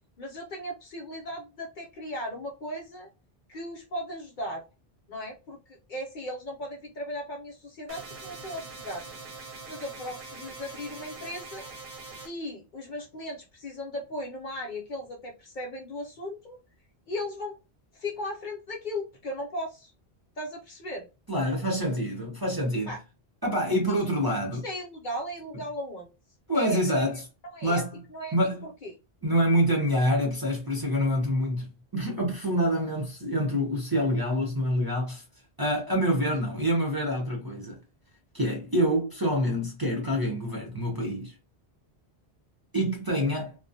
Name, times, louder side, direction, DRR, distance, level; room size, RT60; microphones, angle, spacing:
voice 1, 0.2-3.1 3.5-4.6 5.1-5.6 5.9-9.2 9.7-11.7 12.2-16.6 17.1-17.6 17.9-19.9 20.4-21.1 22.9-23.0 23.9-24.0 24.6-26.1 26.5-27.0 27.5-27.8 28.1-28.3 28.6-28.9, equal, 55° left, 0.7 m, -36 dB
sound 1, 7.9-12.3, right 3 dB, 50° right, 0.9 m, -43 dB
voice 2, 21.3-23.0 23.4-24.6 26.5-27.2 27.6-28.0 28.3-28.6 29.2-35.2 35.6-37.8 38.3-41.3 42.7-43.6, equal, 25° right, 0.6 m, -26 dB
2.3 x 2.1 x 2.6 m
omnidirectional pair, 1.1 m